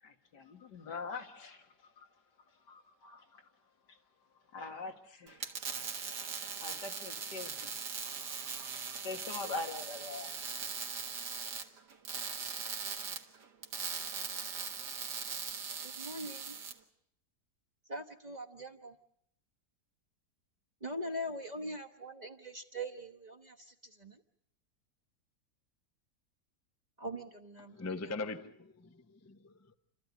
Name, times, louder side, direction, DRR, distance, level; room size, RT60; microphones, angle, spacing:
voice 1, 0.0-2.1 2.5-3.5 3.9-4.0 4.3-5.4 6.6-10.3, left 3 dB, 85° left, 2.5 m, -44 dB
sound 1, 5.3-16.7, right 6 dB, 75° right, 2.1 m, -40 dB
voice 2, 15.8-16.5 17.9-18.9 20.8-23.7 24.0-24.2 27.0-27.8, equal, 30° right, 1.1 m, -42 dB
voice 3, 27.7-29.7, left 3 dB, 15° left, 0.6 m, -41 dB
29.0 x 14.0 x 9.7 m
omnidirectional pair, 1.8 m